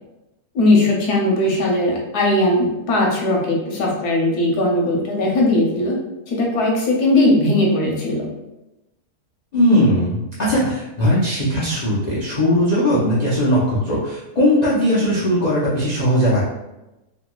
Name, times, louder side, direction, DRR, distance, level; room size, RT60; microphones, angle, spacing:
voice 1, 0.5-6.0 6.3-8.3, left 1 dB, 85° left, -2 dB, 1.3 m, -18 dB
voice 2, 9.5-16.4, equal, 65° left, -8 dB, 0.4 m, -18 dB
3.0 x 2.7 x 2.2 m, 0.97 s
omnidirectional pair, 1.6 m